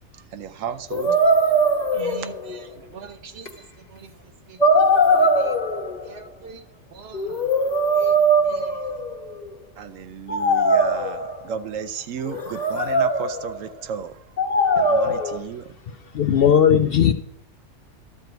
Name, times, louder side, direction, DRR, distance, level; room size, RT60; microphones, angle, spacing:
voice 1, 0.1-1.1 9.8-14.2 14.7-15.8, right 7 dB, 75° right, 1.0 m, -34 dB
sound 1, 0.9-2.6 3.5-3.6 4.6-6.1 7.1-9.4 10.3-11.5 12.2-13.6 14.4-15.4, right 1 dB, 35° left, 1.1 m, -20 dB
voice 2, 1.9-5.6 6.0-6.7 6.9-7.5 7.9-9.0, right 5 dB, 55° right, 1.1 m, -42 dB
voice 3, 16.1-17.1, left 8 dB, 60° left, 0.6 m, -16 dB
12.0 x 4.6 x 7.9 m
omnidirectional pair, 1.4 m